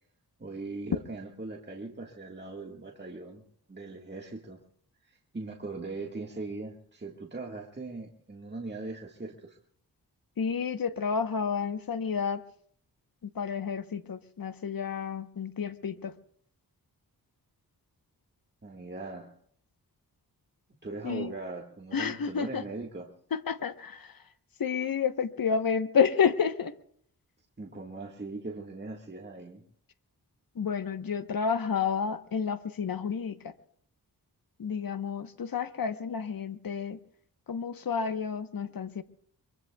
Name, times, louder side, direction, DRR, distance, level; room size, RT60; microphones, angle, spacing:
voice 1, 0.4-3.4 3.7-4.6 5.0-9.6 18.6-19.3 20.8-23.1 27.6-29.6, right 3 dB, 25° right, 0 dB, 1.7 m, -40 dB
voice 2, 10.4-12.4 13.2-16.1 21.0-21.3 21.9-22.6 23.3-24.1 24.6-26.7 30.5-33.5 34.6-37.0 37.5-39.0, left 6 dB, 60° left, 10 dB, 1.1 m, -30 dB
24.0 x 23.5 x 2.3 m, 0.63 s
wide cardioid pair, 80°, 39 cm